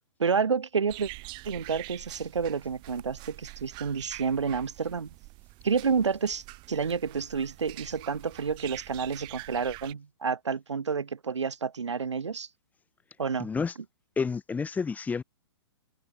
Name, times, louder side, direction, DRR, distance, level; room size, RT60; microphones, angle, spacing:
voice 1, 0.2-1.1 1.4-5.1 5.6-12.5 13.2-13.5, right 5 dB, 90° right, 2.6 m, -29 dB
sound 1, 0.9-9.9, right 23 dB, 30° right, 5.1 m, -45 dB
voice 2, 13.4-13.7 14.2-15.2, left 5 dB, 10° left, 2.7 m, -29 dB
hypercardioid pair, 135°, 15 cm